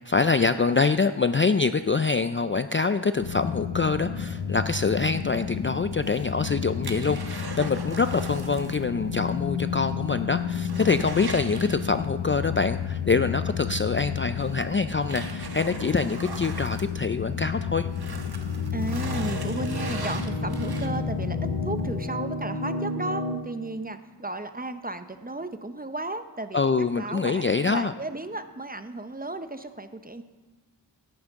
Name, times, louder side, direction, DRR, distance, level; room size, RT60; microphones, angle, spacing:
voice 1, 0.1-17.9 26.5-27.9, left 4 dB, 30° left, 10 dB, 0.3 m, -25 dB
sound 1, 3.2-22.0, left 7 dB, 85° left, 0.8 m, -32 dB
sound 2, 5.9-8.9 9.2-9.3 9.8-9.9 10.2-12.2 13.7-13.8 14.4-17.5 17.9-21.2 21.7-21.8, right 4 dB, 55° right, 1.1 m, -40 dB
sound 3, 18.4-23.4, left 1 dB, 55° left, 1.6 m, -32 dB
voice 2, 18.7-26.6 27.0-30.2, right 2 dB, 20° right, 10 dB, 0.7 m, -34 dB
17.5 x 8.8 x 3.6 m, 1.2 s
wide cardioid pair, 45°, 44 cm